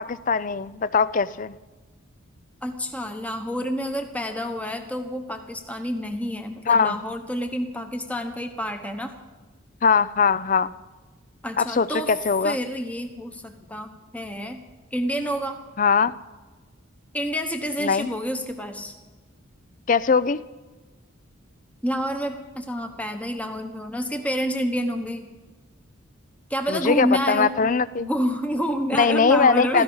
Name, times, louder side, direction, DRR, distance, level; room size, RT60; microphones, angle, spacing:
voice 1, 0.0-1.5 6.7-7.0 9.8-10.7 11.6-12.6 15.8-16.1 17.8-18.1 19.9-20.4 26.7-28.1 29.0-29.8, left 5 dB, 35° left, 17 dB, 0.4 m, -21 dB
voice 2, 2.6-9.1 11.4-12.1 12.4-14.6 14.9-15.6 17.1-18.9 21.8-25.3 26.5-27.7 28.0-29.8, equal, 5° left, 5 dB, 1.1 m, -28 dB
16.5 x 14.0 x 5.5 m, 1.3 s
head